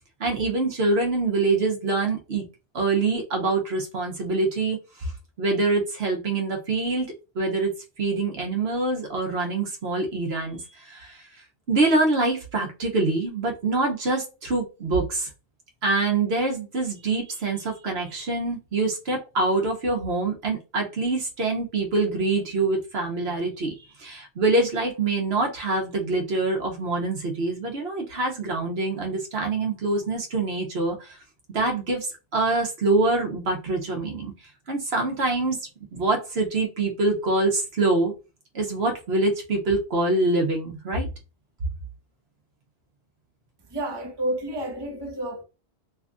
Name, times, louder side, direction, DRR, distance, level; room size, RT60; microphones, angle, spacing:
voice 1, 0.2-2.4 2.7-5.1 5.4-7.1 7.3-7.7 8.0-11.2 11.7-15.3 15.8-31.2 31.5-32.1 32.3-34.3 34.7-35.6 35.9-38.1 38.5-41.1, right 3 dB, 65° right, 1.2 m, -25 dB
voice 2, 43.7-45.4, right 1 dB, 25° right, 0.8 m, -30 dB
3.3 x 2.4 x 3.6 m
omnidirectional pair, 1.1 m